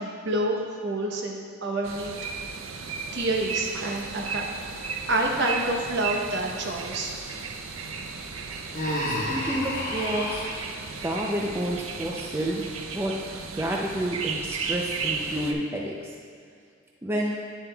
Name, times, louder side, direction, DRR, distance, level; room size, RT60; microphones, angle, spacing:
voice 1, 0.0-2.1 3.1-4.4 5.1-7.2, right 1 dB, 60° right, 0 dB, 0.9 m, -28 dB
sound 1, 1.8-15.5, right 5 dB, 90° right, 0.5 m, -35 dB
Human voice, 8.7-10.6, left 1 dB, 40° left, 1.1 m, -30 dB
voice 2, 9.1-10.5 11.0-15.9 17.0-17.4, right 1 dB, 10° right, -2 dB, 0.4 m, -30 dB
9.4 x 7.2 x 2.3 m, 2.1 s
head